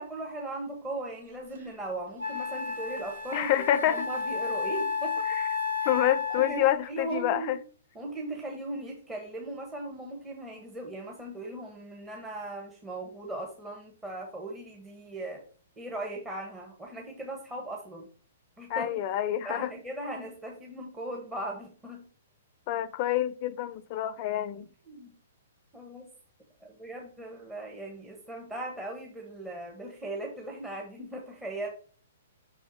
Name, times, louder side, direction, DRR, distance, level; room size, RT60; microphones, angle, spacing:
voice 1, 0.0-3.5 3.9-5.3 5.8-5.9 6.3-7.6 7.9-15.4 15.8-18.0 18.6-19.0 19.4-22.1 24.9-25.1 25.7-26.1 26.6-31.7, right 2 dB, 10° right, 1.4 m, -38 dB
Wind instrument woodwind instrument, 1.5-1.6 2.2-6.8, left 5 dB, 70° right, 2.1 m, -32 dB
voice 2, 3.3-4.1 5.3-5.4 5.9-7.6 18.7-19.7 22.7-24.7, left 12 dB, 40° left, 0.5 m, -27 dB
6.1 x 4.3 x 4.7 m
hypercardioid pair, 120°, 0 cm